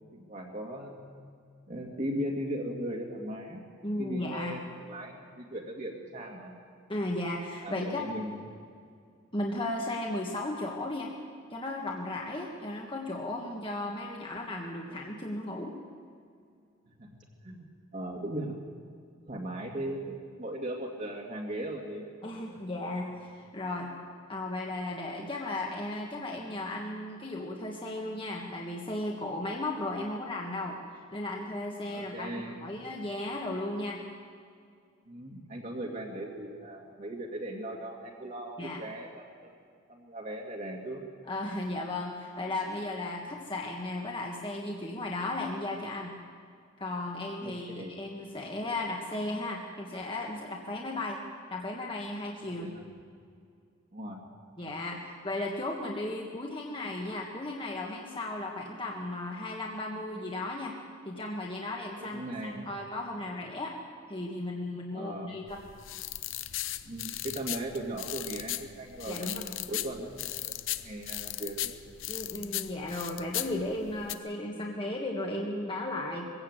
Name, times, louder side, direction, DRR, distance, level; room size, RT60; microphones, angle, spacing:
voice 1, 0.1-1.2 1.7-3.6 4.0-6.5 7.6-8.6 17.0-17.2 17.4-17.6 17.9-18.5 19.3-22.1 31.9-32.7 35.1-39.6 39.9-41.0 47.4-47.9 52.4-52.8 53.9-54.2 62.1-62.7 64.9-65.4 66.8-71.8, right 1 dB, 40° right, -1 dB, 2.4 m, -38 dB
voice 2, 3.8-4.6 6.9-8.0 9.3-11.1 11.5-15.7 22.2-23.9 24.3-30.8 31.1-34.0 38.6-38.8 41.3-46.2 46.8-51.2 51.5-52.7 54.6-60.7 61.0-63.7 64.1-65.6 69.1-69.4 72.1-76.3, left 2 dB, 25° left, -1 dB, 1.7 m, -35 dB
sound 1, 65.5-74.1, left 14 dB, 70° left, 0.7 m, -37 dB
22.5 x 16.5 x 8.2 m, 2.3 s
head